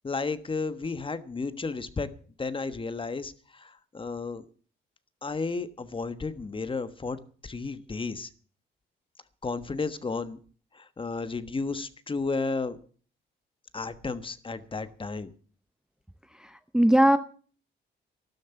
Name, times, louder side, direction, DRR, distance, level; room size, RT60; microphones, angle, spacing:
voice 1, 0.0-2.1 2.4-4.4 5.2-7.2 7.4-8.3 9.4-10.4 10.7-12.8 13.7-15.3, left 4 dB, 25° left, 13 dB, 1.3 m, -33 dB
voice 2, 16.4-17.2, right 1 dB, 5° right, 11 dB, 0.7 m, -20 dB
12.5 x 11.5 x 7.0 m, 0.42 s
cardioid pair, 90°, 20 cm